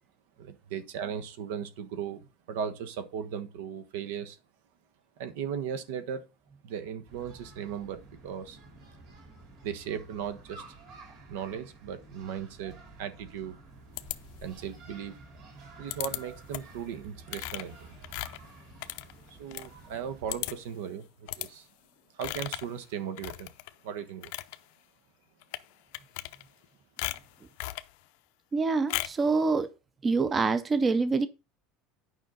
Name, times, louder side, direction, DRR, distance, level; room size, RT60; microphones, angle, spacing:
voice 1, 0.4-4.4 5.2-6.3 6.6-8.6 9.6-10.6 11.3-13.6 14.4-15.1 15.8-17.9 19.4-21.7 22.1-23.5 23.8-24.3, right 8 dB, 90° right, 1.2 m, -37 dB
sound 1, 7.1-20.5, right 3 dB, 45° right, 3.4 m, -51 dB
sound 2, 14.0-14.7 15.9-16.2 16.5-16.8 17.3-19.7 20.0-20.1 20.3-20.7 21.3-21.5 22.2-22.7 23.2-23.7 24.1-24.6 25.4-25.7 25.9-26.7 27.0-27.9 28.9-29.3, left 18 dB, 65° left, 0.5 m, -37 dB
voice 2, 28.5-29.7 30.0-31.3, right 4 dB, 15° right, 0.5 m, -25 dB
9.5 x 5.5 x 3.8 m
cardioid pair, 175°, 0 cm